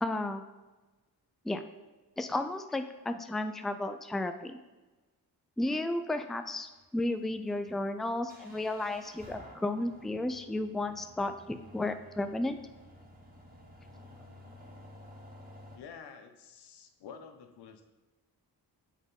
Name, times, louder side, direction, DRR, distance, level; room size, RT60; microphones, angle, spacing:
voice 1, 0.0-0.4 1.4-1.6 2.2-4.6 5.6-11.3 11.7-12.6, left 2 dB, ahead, 8 dB, 0.4 m, -33 dB
sound 1, 6.6-15.8, left 1 dB, 20° right, 2.0 m, -53 dB
voice 2, 15.7-17.9, left 6 dB, 90° left, 8 dB, 0.7 m, -49 dB
7.1 x 4.1 x 3.6 m, 1.2 s
cardioid pair, 70°, 39 cm